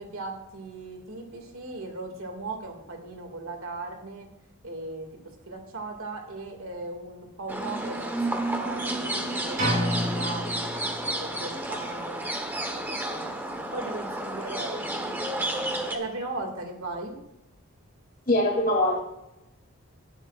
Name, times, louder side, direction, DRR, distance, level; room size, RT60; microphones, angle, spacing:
voice 1, 0.0-4.3 4.6-10.8 11.2-12.3 12.7-13.3 13.7-17.1, right 2 dB, 75° right, 3 dB, 2.3 m, -38 dB
sound 1, 7.5-16.0, right 1 dB, 10° right, 1.1 m, -31 dB
sound 2, 9.6-11.5, equal, 40° right, 4.2 m, -29 dB
voice 2, 18.3-19.0, left 1 dB, 40° left, -2 dB, 3.2 m, -22 dB
17.0 x 11.0 x 2.5 m, 0.90 s
head